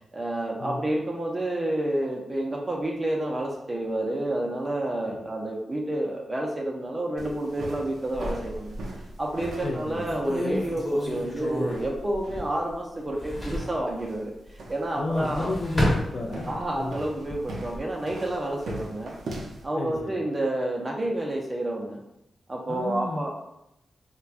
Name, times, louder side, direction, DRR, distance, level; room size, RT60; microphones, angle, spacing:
voice 1, 0.1-8.7 9.2-15.5 16.5-19.2 19.6-22.0 22.5-23.3, right 1 dB, 20° right, -1 dB, 0.5 m, -29 dB
sound 1, 7.2-19.7, right 1 dB, 85° right, 0.6 m, -42 dB
sound 2, 8.1-9.1 9.6-9.7 10.0-12.7 13.0-13.8 14.9-16.7 17.1-17.8, equal, 20° left, 0.9 m, -31 dB
voice 2, 9.6-10.1 15.0-17.0 19.8-20.1 22.7-23.3, left 2 dB, 50° left, -2 dB, 0.4 m, -31 dB
4.4 x 2.2 x 2.4 m, 0.83 s
wide cardioid pair, 155°, 0 cm